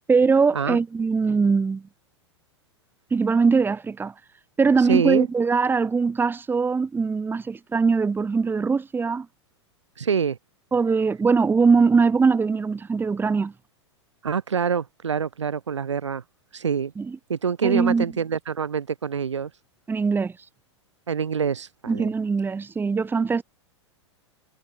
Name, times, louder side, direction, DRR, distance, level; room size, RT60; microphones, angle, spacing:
voice 1, 0.1-1.8 3.1-4.1 4.6-9.3 10.7-13.5 17.0-17.2 17.6-18.0 19.9-20.3 21.9-23.4, right 5 dB, 15° right, 2.2 m, -21 dB
voice 2, 4.8-5.3 10.0-10.4 14.2-16.2 16.5-16.9 17.3-19.5 21.1-22.1, right 6 dB, 75° right, 2.7 m, -25 dB
figure-of-eight pair, 95°, 15 cm